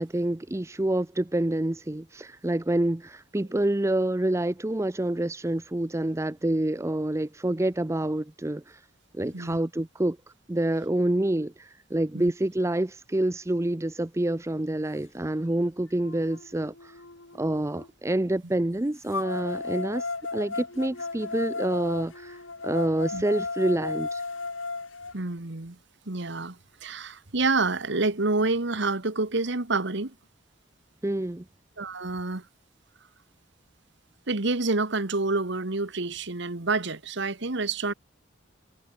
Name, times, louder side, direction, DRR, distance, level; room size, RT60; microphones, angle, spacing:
voice 1, 0.0-8.8 9.1-10.2 10.5-16.9 17.4-20.1 20.3-24.2 31.0-31.4, right 1 dB, 15° right, 0.5 m, -27 dB
sound 1, 15.3-15.4 16.0-17.9 19.1-25.1, left 3 dB, 80° left, 3.3 m, -35 dB
voice 2, 25.1-25.8 26.1-30.1 31.8-32.4 34.3-37.9, right 3 dB, 60° right, 1.5 m, -28 dB
head